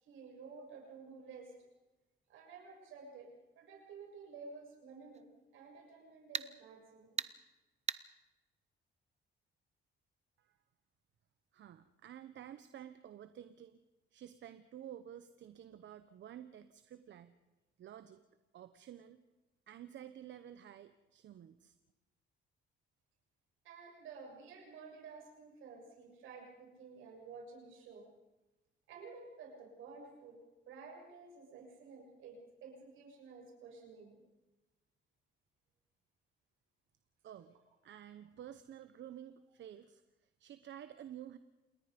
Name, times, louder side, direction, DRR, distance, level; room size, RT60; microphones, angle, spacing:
voice 1, 0.0-1.5 2.3-3.3 3.5-5.3 5.5-7.2 23.6-28.1 28.9-30.4 30.7-34.2, right 4 dB, 85° right, 1 dB, 7.2 m, -52 dB
sound 1, 5.1-5.2 6.3-6.5 7.2-7.3 7.9-8.0, right 6 dB, 35° right, 0.8 m, -37 dB
voice 2, 11.5-13.8 14.1-17.4 17.8-18.2 18.5-19.2 19.7-21.7 37.2-37.6 37.8-41.4, right 10 dB, 70° right, 11 dB, 1.1 m, -51 dB
28.0 x 20.5 x 5.3 m, 1.1 s
cardioid pair, 90°, 20 cm